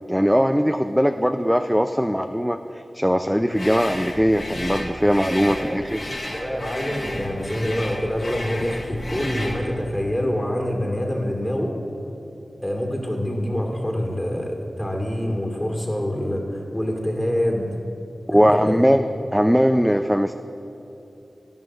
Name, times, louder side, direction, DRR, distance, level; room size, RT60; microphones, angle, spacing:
voice 1, 0.1-2.6 2.9-6.0 18.3-20.3, equal, ahead, 6 dB, 0.3 m, -20 dB
sound 1, 3.5-9.6, left 1 dB, 45° left, 1.5 m, -32 dB
voice 2, 6.3-11.7 12.6-17.7 18.3-18.9, equal, 15° left, 1 dB, 1.6 m, -26 dB
13.0 x 11.0 x 2.4 m, 2.9 s
wide cardioid pair, 60°, 0 cm